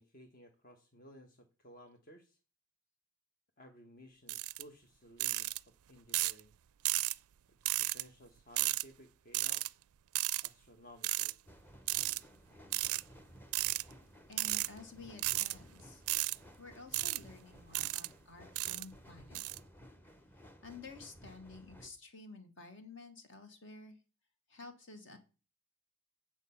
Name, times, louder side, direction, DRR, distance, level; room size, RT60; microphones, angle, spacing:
voice 1, 0.0-2.4 3.6-6.5 7.9-9.7 10.1-11.4, equal, 40° left, 3 dB, 1.1 m, -57 dB
sound 1, 4.3-4.6 5.2-5.6 6.1-6.4 6.8-7.1 7.6-8.0 8.6-8.8 9.3-9.7 10.1-10.5 11.0-11.3 11.9-12.2 12.7-13.0 13.5-13.8 14.3-14.7 15.2-15.5 16.1-16.4 16.9-17.2 17.7-18.1 18.6-18.8 19.3-19.6, right 19 dB, 80° right, 0.4 m, -33 dB
sound 2, 11.5-21.9, equal, 10° left, 0.8 m, -57 dB
voice 2, 14.3-16.0 16.6-19.4 20.6-24.0 24.5-25.2, left 3 dB, 55° left, 6 dB, 2.0 m, -52 dB
9.0 x 7.4 x 5.6 m, 0.34 s
head